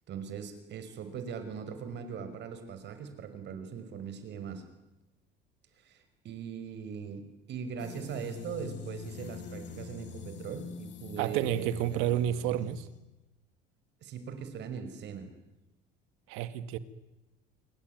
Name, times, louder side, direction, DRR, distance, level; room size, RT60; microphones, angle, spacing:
voice 1, 0.1-4.6 5.8-12.0 14.0-15.3, right 7 dB, 55° right, 5.5 m, -40 dB
sound 1, 7.8-13.0, left 6 dB, 60° left, 6.1 m, -44 dB
voice 2, 11.2-12.9 16.3-16.8, right 11 dB, 80° right, 1.9 m, -30 dB
27.0 x 23.0 x 9.5 m
supercardioid pair, 105°, 21 cm